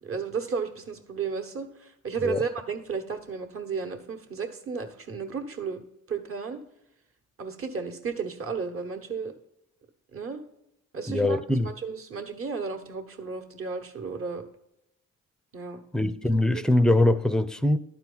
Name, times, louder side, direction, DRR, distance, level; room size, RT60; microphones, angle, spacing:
voice 1, 0.0-5.8 6.1-6.6 7.4-9.3 10.1-10.4 10.9-11.4 11.6-14.4 15.5-15.8 16.5-16.6, right 5 dB, 45° right, 1.2 m, -33 dB
voice 2, 11.1-11.7 15.9-17.8, left 1 dB, ahead, 0.4 m, -22 dB
11.5 x 4.5 x 3.9 m
cardioid pair, 90°, 30 cm